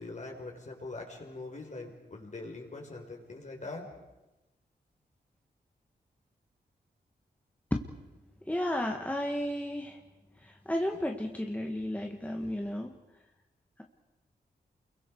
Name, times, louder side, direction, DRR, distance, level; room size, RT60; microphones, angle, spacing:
voice 1, 0.0-3.9, left 2 dB, 45° left, 1 dB, 5.3 m, -42 dB
voice 2, 8.5-10.0 10.4-12.9, left 1 dB, 10° left, 2 dB, 1.8 m, -33 dB
29.0 x 23.0 x 4.9 m, 1.0 s
cardioid pair, 70°, 17 cm